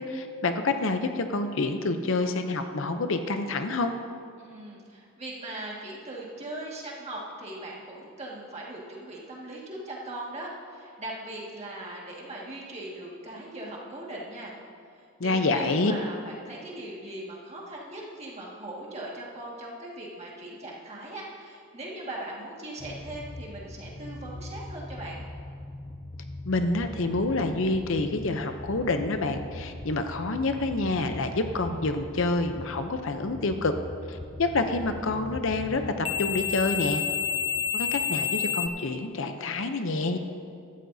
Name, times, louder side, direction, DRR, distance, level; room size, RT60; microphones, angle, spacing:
voice 1, 0.0-3.9 15.2-15.9 26.5-33.7 34.1-37.0 37.7-40.2, left 3 dB, 60° left, 7 dB, 0.6 m, -27 dB
voice 2, 4.4-14.5 14.9-25.2, right 1 dB, 30° right, -4 dB, 1.8 m, -39 dB
sound 1, 22.8-38.7, left 6 dB, 25° left, 0.4 m, -35 dB
15.5 x 12.5 x 2.7 m, 2.3 s
head